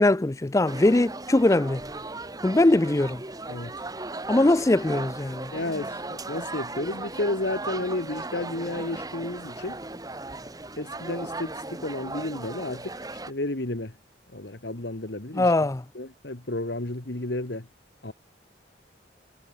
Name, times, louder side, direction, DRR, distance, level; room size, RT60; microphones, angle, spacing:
voice 1, 0.0-1.8 2.4-3.2 4.3-5.5 15.3-15.8, left 2 dB, 15° left, 0.4 m, -21 dB
sound 1, 0.7-13.3, right 2 dB, 20° right, 2.0 m, -37 dB
voice 2, 5.5-9.8 10.8-13.0 13.3-14.0 14.3-15.7 15.9-17.7 18.0-18.1, left 2 dB, 65° left, 2.0 m, -32 dB
head